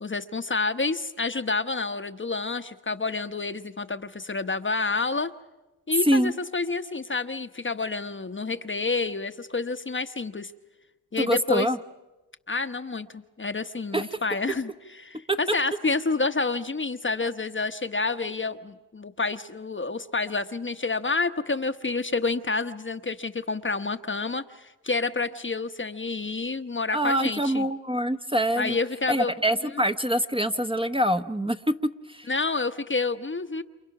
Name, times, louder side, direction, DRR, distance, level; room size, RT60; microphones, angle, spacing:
voice 1, 0.0-5.3 5.9-10.5 11.1-11.7 12.5-14.7 15.0-27.7 28.6-29.3 32.3-33.6, left 3 dB, 25° left, 9 dB, 1.1 m, -29 dB
voice 2, 11.2-11.8 13.9-14.1 15.3-15.4 26.9-28.8 29.1-31.6 32.1-32.3, right 1 dB, 10° right, 7 dB, 1.0 m, -25 dB
28.5 x 28.0 x 6.0 m, 1.1 s
supercardioid pair, 55°, 44 cm